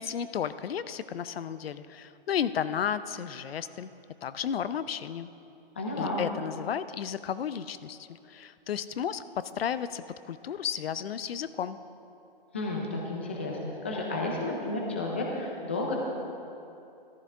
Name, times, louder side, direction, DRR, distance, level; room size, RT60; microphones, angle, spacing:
voice 1, 0.0-3.9 4.2-5.3 6.0-11.8, left 8 dB, 80° left, 13 dB, 0.6 m, -33 dB
voice 2, 5.8-6.2 12.5-15.9, left 2 dB, 10° left, -1 dB, 0.5 m, -32 dB
14.0 x 13.0 x 3.7 m, 2.7 s
hypercardioid pair, 180°, 29 cm